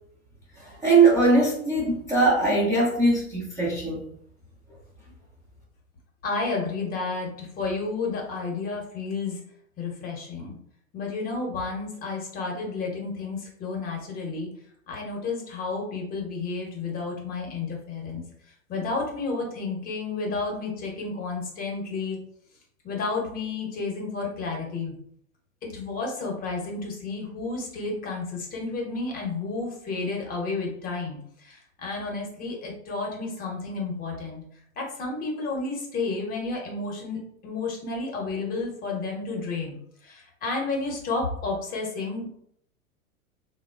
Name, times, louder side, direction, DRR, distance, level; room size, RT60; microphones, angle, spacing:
voice 1, 0.6-4.0, right 3 dB, 10° right, -9 dB, 0.3 m, -21 dB
voice 2, 6.2-9.4 9.8-10.6 10.9-14.5 14.9-18.2 18.7-22.2 22.8-24.9 25.6-34.4 34.8-42.3, left 3 dB, 20° left, 0 dB, 0.7 m, -31 dB
3.4 x 2.0 x 2.3 m, 0.68 s
figure-of-eight pair, 100°, 43 cm